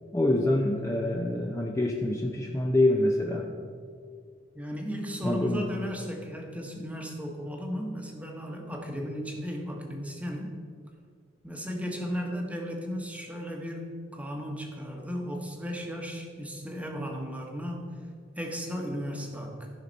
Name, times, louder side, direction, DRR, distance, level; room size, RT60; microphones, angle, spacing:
voice 1, 0.1-3.5 5.2-5.6, left 1 dB, 15° left, 0 dB, 0.6 m, -26 dB
voice 2, 4.5-10.5 11.4-17.9 18.4-19.7, equal, 10° right, 1 dB, 1.1 m, -35 dB
14.5 x 5.7 x 4.1 m, 2.1 s
head